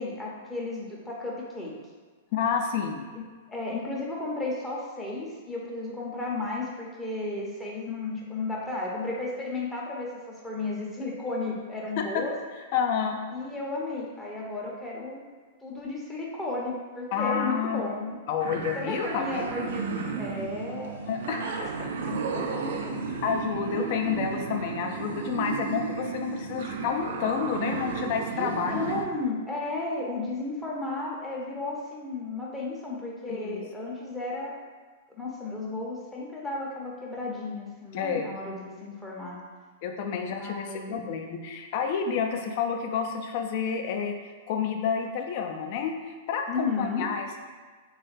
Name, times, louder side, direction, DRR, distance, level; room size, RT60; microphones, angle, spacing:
voice 1, 0.0-1.7 3.1-3.2 3.5-12.3 13.3-15.2 15.6-18.2 18.7-21.0 21.8-23.0 28.4-34.5 35.2-39.4 40.4-41.0 46.5-47.1, left 2 dB, 10° left, -5 dB, 0.6 m, -33 dB
voice 2, 2.3-3.0 12.1-12.3 12.7-13.2 17.1-17.8 18.3-19.5 21.0-21.9 23.2-29.0 33.3-33.6 37.9-38.3 39.8-47.4, left 6 dB, 45° left, 4 dB, 0.4 m, -29 dB
sound 1, 18.4-29.1, right 5 dB, 60° right, 0.3 m, -33 dB
3.3 x 2.3 x 3.2 m, 1.5 s
figure-of-eight pair, 100°, 0 cm